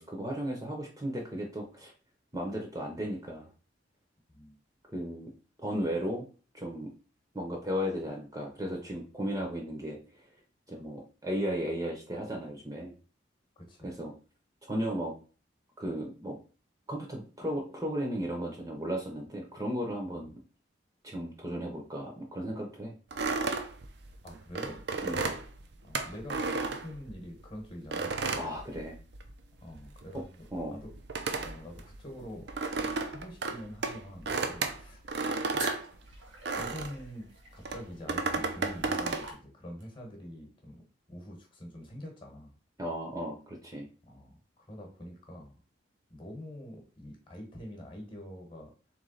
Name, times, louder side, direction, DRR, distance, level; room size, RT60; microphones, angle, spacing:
voice 1, 0.0-1.9 2.3-3.5 4.9-5.3 5.6-6.3 6.5-6.9 7.3-10.0 10.7-12.9 13.8-14.1 14.7-15.1 15.8-16.4 16.9-20.3 21.0-22.9 25.0-25.3 28.4-29.0 30.1-30.2 30.5-30.8 42.8-43.9, equal, 20° right, 0 dB, 0.8 m, -35 dB
voice 2, 13.6-14.0 20.1-20.3 24.2-24.8 25.8-28.2 29.6-30.4 30.7-30.9 31.4-32.5 33.0-35.1 35.5-35.7 36.6-40.8 41.1-42.5 44.1-45.5 46.1-48.7, equal, 25° left, 1 dB, 1.1 m, -45 dB
sound 1, 23.1-27.4 27.9-29.4 29.6-37.0 37.6-39.3, right 3 dB, 60° right, 0.6 m, -33 dB
sound 2, 35.6-40.0, right 2 dB, 85° right, 1.8 m, -45 dB
3.5 x 3.2 x 3.9 m, 0.37 s
head